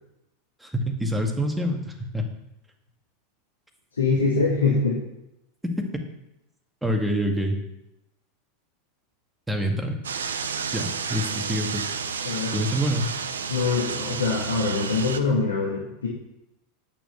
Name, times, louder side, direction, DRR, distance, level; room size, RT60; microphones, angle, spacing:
voice 1, 1.0-2.3 6.8-7.6 9.5-10.0 10.7-11.9 12.5-13.1, equal, 5° right, 3 dB, 2.1 m, -26 dB
voice 2, 4.0-5.0 12.2-12.5 13.5-16.1, left 4 dB, 75° left, -3 dB, 2.1 m, -24 dB
sound 1, 10.0-15.2, right 6 dB, 70° right, 0.8 m, -31 dB
9.0 x 8.9 x 6.8 m, 0.88 s
figure-of-eight pair, 85°, 0 cm